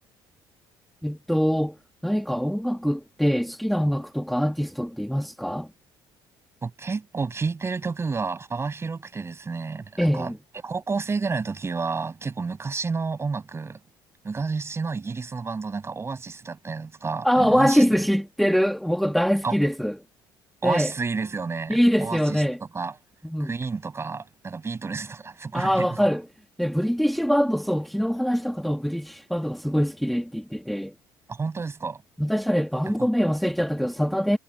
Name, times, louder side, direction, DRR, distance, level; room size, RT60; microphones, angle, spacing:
voice 1, 1.0-5.7 10.0-10.4 17.2-20.0 20.6-20.9 21.7-22.6 23.2-23.5 25.5-26.3 26.6-30.9 32.2-34.4, equal, ahead, 1.9 m, -23 dB
voice 2, 6.6-10.3 10.6-13.8 14.2-18.0 19.4-19.6 20.6-22.4 22.7-22.9 23.4-26.1 31.3-32.0 33.0-33.1, right 4 dB, 30° right, 6.6 m, -30 dB
supercardioid pair, 85°, 9 cm